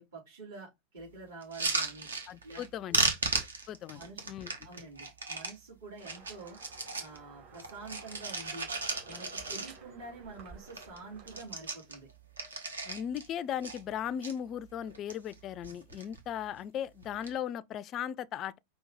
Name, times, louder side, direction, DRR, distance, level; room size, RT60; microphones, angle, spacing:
voice 1, 0.0-2.1 2.4-2.6 2.9-3.1 3.9-4.2 4.6-6.6 6.9-8.7 9.0-12.1, right 3 dB, 55° right, 2.9 m, -47 dB
sound 1, 1.4-2.7 2.9-5.6 6.0-7.2 7.5-10.0 10.4-10.5 10.7-11.0 11.2-13.3 13.6-14.3 14.9-15.4 15.6-16.2 17.0-17.3, right 3 dB, 75° right, 1.1 m, -35 dB
voice 2, 2.3-3.0 3.7-4.0 4.3-4.5 12.9-18.6, left 9 dB, 35° left, 0.3 m, -37 dB
sound 2, 6.0-11.4, right 4 dB, 40° right, 2.0 m, -54 dB
5.3 x 2.8 x 3.5 m
figure-of-eight pair, 90°, 0 cm